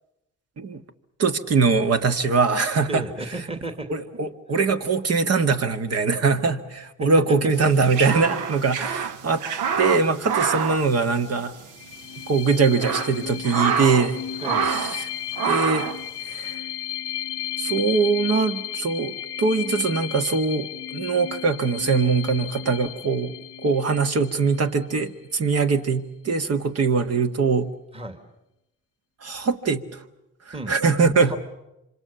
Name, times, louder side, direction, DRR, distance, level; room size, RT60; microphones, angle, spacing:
voice 1, 1.2-3.0 3.9-9.4 9.8-11.6 12.3-14.2 14.6-15.1 15.5-15.9 16.3-16.6 17.6-23.3 23.6-27.7 29.2-30.0 30.7-31.3, right 4 dB, 55° right, 8 dB, 1.9 m, -22 dB
voice 2, 2.9-3.9 4.5-4.6 7.0-7.7 14.4-14.8 27.9-28.2 30.5-30.8 31.2-31.4, right 2 dB, 20° right, 6 dB, 2.4 m, -33 dB
sound 1, 7.6-11.7 11.9-12.0 12.6-14.1 14.4-15.0 15.4-16.0, right 6 dB, 85° right, 1.2 m, -26 dB
sound 2, 11.7-25.1, left 11 dB, 50° left, 0.8 m, -34 dB
26.0 x 26.0 x 7.0 m, 0.88 s
cardioid pair, 90°, 30 cm